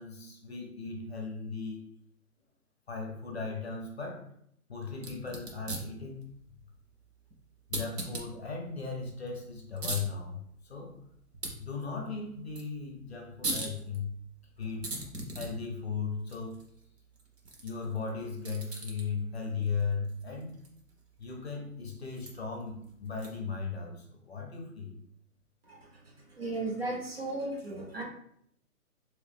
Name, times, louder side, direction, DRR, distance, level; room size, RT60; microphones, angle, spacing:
voice 1, 0.0-1.8 2.9-4.3 4.7-6.2 7.7-11.0 11.6-14.1 14.6-15.1 15.3-16.6 17.6-20.6 21.2-24.9, left 5 dB, 45° left, 1 dB, 0.6 m, -37 dB
sound 1, 4.9-23.6, right 2 dB, 90° right, 1.2 m, -43 dB
voice 2, 26.4-28.0, right 2 dB, 40° right, -1 dB, 0.6 m, -35 dB
3.0 x 2.8 x 3.4 m, 0.70 s
hypercardioid pair, 175°, 46 cm